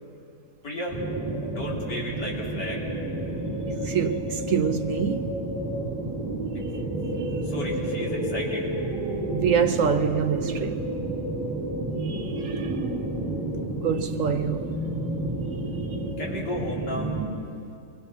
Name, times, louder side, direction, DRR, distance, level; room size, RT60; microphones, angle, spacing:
voice 1, 0.6-1.0 1.5-2.8 7.4-8.7 16.2-17.1, left 1 dB, 85° left, 4.4 m, -34 dB
sound 1, 0.9-17.3, right 1 dB, 20° right, 7.5 m, -30 dB
voice 2, 3.7-5.3 6.7-7.4 9.3-10.8 12.0-12.9 13.8-14.8, right 7 dB, 60° right, 1.0 m, -27 dB
27.0 x 22.0 x 6.1 m
omnidirectional pair, 1.8 m